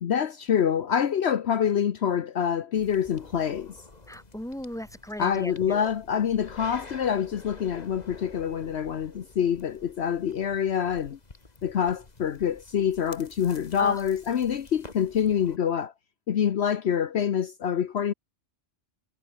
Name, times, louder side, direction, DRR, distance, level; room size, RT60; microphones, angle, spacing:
voice 1, 0.0-3.8 5.2-11.2 11.6-15.9 16.3-18.1, left 8 dB, 65° left, 1.1 m, -26 dB
sound 1, 2.7-15.6, left 3 dB, 35° left, 2.1 m, -49 dB
voice 2, 4.1-5.9 13.8-14.0, equal, 5° left, 2.8 m, -37 dB
omnidirectional pair, 1.2 m